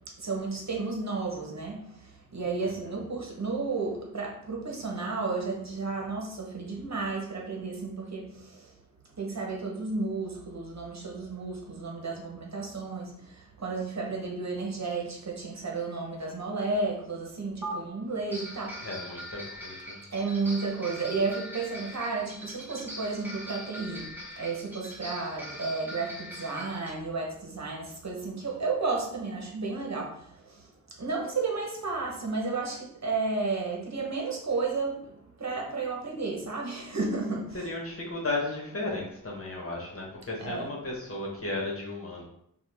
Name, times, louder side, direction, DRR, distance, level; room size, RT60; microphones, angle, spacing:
voice 1, 0.2-8.7 9.2-18.9 20.1-30.7 31.0-37.7 40.4-40.7, right 3 dB, 50° right, -1 dB, 1.0 m, -32 dB
voice 2, 2.6-2.9 18.8-20.0 37.5-42.2, left 2 dB, 40° left, -3 dB, 1.3 m, -35 dB
sound 1, 17.6-17.7 18.3-26.9, equal, 5° right, 1.1 m, -42 dB
5.7 x 2.5 x 3.4 m, 0.72 s
wide cardioid pair, 120°, 34 cm